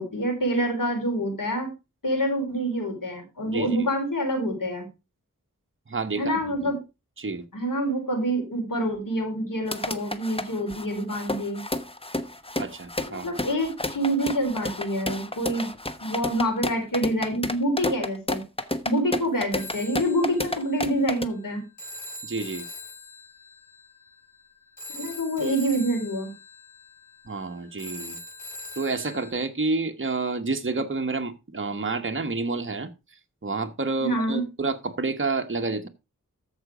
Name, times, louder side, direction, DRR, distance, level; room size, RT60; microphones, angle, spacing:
voice 1, 0.0-1.7 2.0-4.9 6.1-6.8 7.5-11.6 13.1-15.7 16.0-18.4 18.8-21.6 24.9-26.3 34.0-34.4, right 1 dB, 90° left, 4.2 m, -26 dB
voice 2, 3.5-3.9 5.9-6.5 7.2-7.4 12.6-13.3 22.2-22.7 25.4-25.5 27.3-28.2 28.8-32.9 33.4-35.9, right 3 dB, 40° right, 1.1 m, -29 dB
sound 1, 9.7-21.3, left 1 dB, 15° left, 1.0 m, -31 dB
Telephone, 19.5-29.3, left 1 dB, 70° left, 2.9 m, -42 dB
13.5 x 5.0 x 4.9 m
wide cardioid pair, 65°, 32 cm